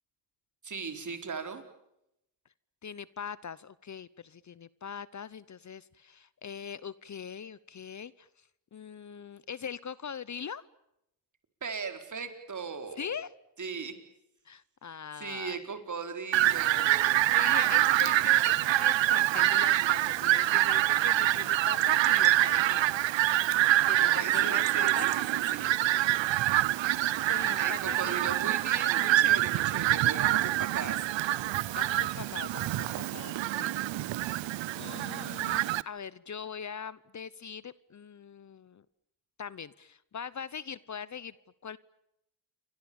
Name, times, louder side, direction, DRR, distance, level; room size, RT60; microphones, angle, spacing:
voice 1, 0.6-1.6 11.6-13.1 13.6-13.9 15.2-17.3 23.9-25.7 27.6-31.1, right 5 dB, 40° right, 7 dB, 4.6 m, -38 dB
voice 2, 2.8-8.3 8.7-10.6 13.0-13.3 14.4-15.6 17.3-23.4 23.9-25.1 27.3-28.4 31.7-33.7 34.1-34.5 34.8-38.8 39.4-41.3 41.6-41.8, left 7 dB, 40° left, 19 dB, 0.9 m, -42 dB
Fowl, 16.3-35.8, right 15 dB, 85° right, 0.9 m, -26 dB
28.5 x 24.5 x 7.1 m, 0.84 s
cardioid pair, 90°, 44 cm